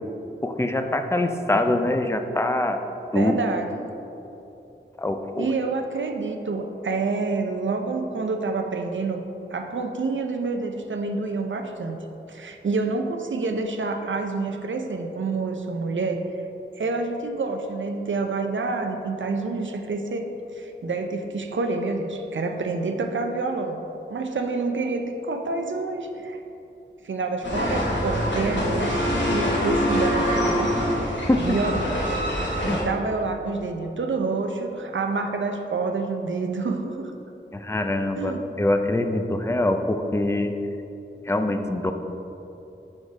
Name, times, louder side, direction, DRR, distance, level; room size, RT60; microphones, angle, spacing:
voice 1, 0.4-2.8 3.1-3.4 5.0-5.5 31.3-31.6 32.7-32.8 37.5-40.5 41.3-41.9, left 1 dB, 15° left, 6 dB, 0.4 m, -24 dB
voice 2, 3.1-3.8 5.4-9.2 9.5-12.0 12.3-16.2 16.7-20.3 20.6-23.8 24.1-26.4 27.0-29.0 29.3-32.0 32.6-37.1 38.1-38.4, right 3 dB, 75° right, 4 dB, 0.5 m, -28 dB
sound 1, 27.4-32.8, equal, 65° left, 1.1 m, -24 dB
4.9 x 4.4 x 4.7 m, 2.9 s
wide cardioid pair, 50°, 20 cm